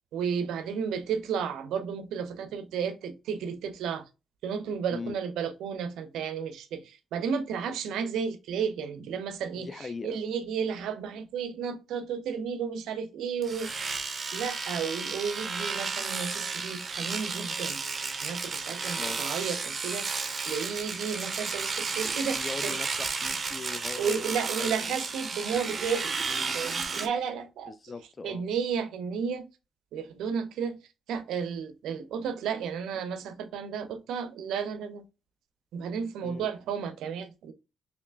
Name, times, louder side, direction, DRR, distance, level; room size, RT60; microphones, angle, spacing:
voice 1, 0.1-4.0 4.4-13.7 14.3-17.8 18.2-22.8 24.0-26.1 26.5-27.7 28.2-29.5 29.9-30.8 31.1-35.0 35.7-37.5, right 6 dB, 85° right, 0.4 m, -33 dB
voice 2, 9.5-10.2 19.0-19.2 22.3-24.9 26.3-26.6 27.7-28.4 36.2-36.5, left 4 dB, 30° left, 0.3 m, -40 dB
Domestic sounds home sounds, 13.4-27.1, right 4 dB, 40° right, 0.6 m, -33 dB
3.2 x 2.9 x 3.3 m
cardioid pair, 90°, 0 cm